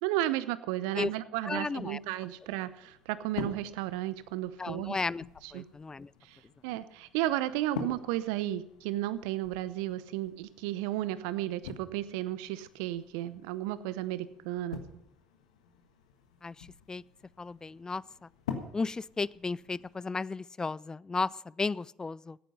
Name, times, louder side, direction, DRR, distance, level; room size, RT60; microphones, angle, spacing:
voice 1, 0.0-5.0 5.4-5.7 6.2-6.4 6.6-14.8, right 14 dB, 70° right, 16 dB, 0.7 m, -33 dB
voice 2, 1.5-2.0 4.6-5.2 5.5-6.1 16.4-17.0 17.4-18.0 18.7-22.4, left 4 dB, 20° left, 22 dB, 0.4 m, -34 dB
sound 1, 2.0-20.0, left 7 dB, 80° left, 1.4 m, -47 dB
15.5 x 9.2 x 5.5 m, 0.79 s
hypercardioid pair, 55°, 3 cm